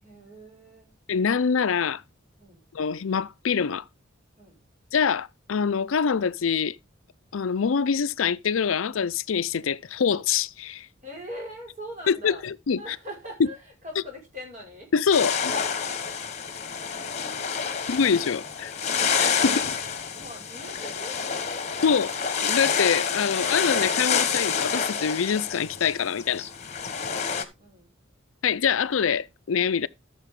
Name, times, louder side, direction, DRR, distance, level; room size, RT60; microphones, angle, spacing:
voice 1, 0.0-0.9 2.4-2.6 4.4-4.6 11.0-12.5 12.8-14.9 16.5-17.8 20.1-21.7 26.8-27.9, equal, 40° right, 5.2 m, -43 dB
voice 2, 1.1-2.0 2.7-3.8 4.9-6.8 7.3-10.9 12.1-12.3 12.7-12.8 14.9-15.5 17.9-18.7 19.2-19.7 21.8-22.1 22.4-26.4 28.4-29.9, left 6 dB, 85° left, 0.5 m, -25 dB
sound 1, 15.1-27.4, left 6 dB, 35° left, 1.2 m, -28 dB
13.5 x 6.8 x 3.6 m
head